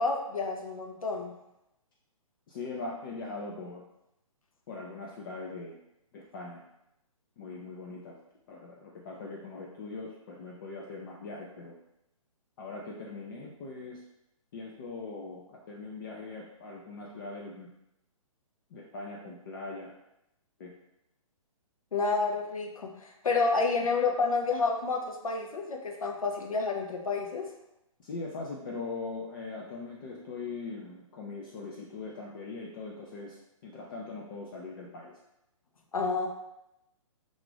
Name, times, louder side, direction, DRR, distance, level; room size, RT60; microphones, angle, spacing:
voice 1, 0.0-1.3 21.9-27.4 35.9-36.3, left 4 dB, 80° left, 1 dB, 0.6 m, -29 dB
voice 2, 2.5-3.8 4.7-5.8 6.1-6.7 7.4-8.2 8.5-11.7 12.6-14.0 14.5-17.7 18.7-19.9 20.6-20.7 28.0-35.2, left 3 dB, 40° left, -2 dB, 0.4 m, -41 dB
2.5 x 2.4 x 3.4 m, 0.85 s
figure-of-eight pair, 130°, 18 cm